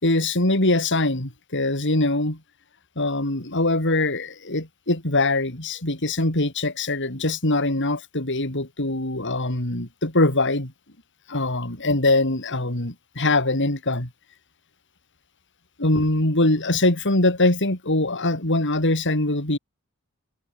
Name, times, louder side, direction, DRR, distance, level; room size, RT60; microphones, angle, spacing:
voice 1, 0.0-2.4 3.0-10.7 11.3-14.1 15.8-19.6, left 2 dB, 55° left, 4.9 m, -22 dB
head